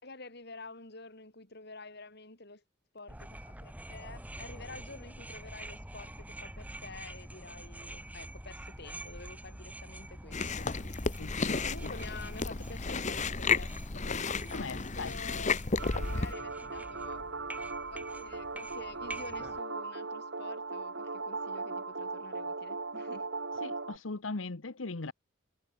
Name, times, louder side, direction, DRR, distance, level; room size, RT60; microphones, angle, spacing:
voice 1, 0.0-2.6 2.9-11.1 11.4-17.2 17.9-23.3, left 3 dB, 55° left, 5.2 m, -49 dB
sound 1, 3.1-19.6, right 1 dB, 10° right, 2.9 m, -46 dB
Chewing mastication, 10.3-16.3, left 4 dB, 35° left, 1.0 m, -33 dB
voice 2, 11.2-11.9 14.3-15.1 15.4-15.6 23.6-25.1, left 3 dB, 85° left, 1.1 m, -40 dB
sound 2, 15.8-24.0, right 3 dB, 65° right, 2.5 m, -38 dB
head